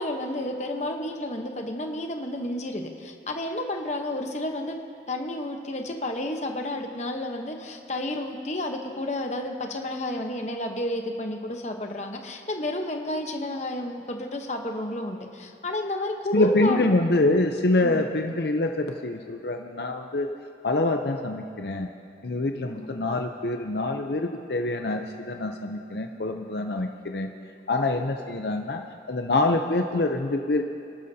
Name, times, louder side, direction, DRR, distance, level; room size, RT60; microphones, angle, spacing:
voice 1, 0.0-4.8 5.1-16.9 17.8-18.1 22.6-22.8, left 1 dB, 40° left, 3 dB, 1.0 m, -31 dB
voice 2, 16.3-20.3 20.6-21.9 22.2-27.3 27.7-28.8 29.1-30.6, left 2 dB, 70° left, 4 dB, 0.7 m, -25 dB
29.5 x 12.5 x 2.8 m, 2.4 s
head